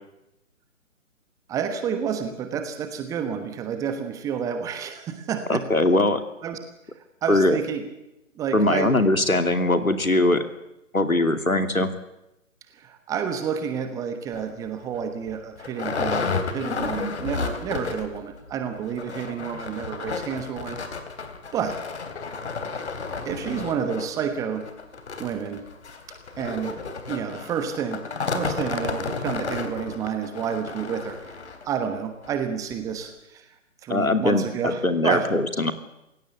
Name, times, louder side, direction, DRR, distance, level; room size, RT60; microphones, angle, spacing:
voice 1, 1.5-5.6 6.4-6.6 7.2-7.8 8.3-8.9 12.7-20.8 21.5-21.8 23.2-24.6 25.2-25.6 26.4-26.8 27.1-28.0 28.3-31.2 31.6-33.5 33.8-35.3, right 7 dB, 10° right, 7 dB, 1.2 m, -29 dB
voice 2, 5.5-6.2 7.3-7.6 8.5-10.4 10.9-11.9 33.9-35.7, left 2 dB, 85° left, 8 dB, 2.8 m, -21 dB
sound 1, 14.3-14.5 15.0-15.1 15.3-18.2 18.5-18.6 18.9-31.7 32.2-32.3 32.7-32.8, left 4 dB, 50° left, 3.4 m, -32 dB
28.0 x 16.5 x 8.3 m, 0.92 s
figure-of-eight pair, 135°, 41 cm